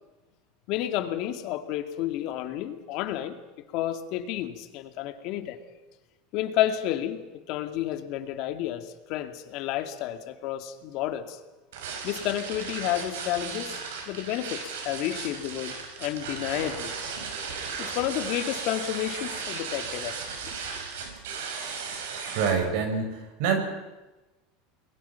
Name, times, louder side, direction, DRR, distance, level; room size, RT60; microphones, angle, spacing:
voice 1, 0.7-3.4 3.7-5.6 6.3-11.4 12.0-15.7 16.0-16.9 17.8-20.2, left 12 dB, 55° left, 8 dB, 2.3 m, -31 dB
sound 1, 11.7-22.5, right 5 dB, 90° right, 5.5 m, -36 dB
voice 2, 22.3-23.6, right 6 dB, 65° right, 5 dB, 5.4 m, -26 dB
30.0 x 21.5 x 5.9 m, 1.1 s
supercardioid pair, 140°, 0 cm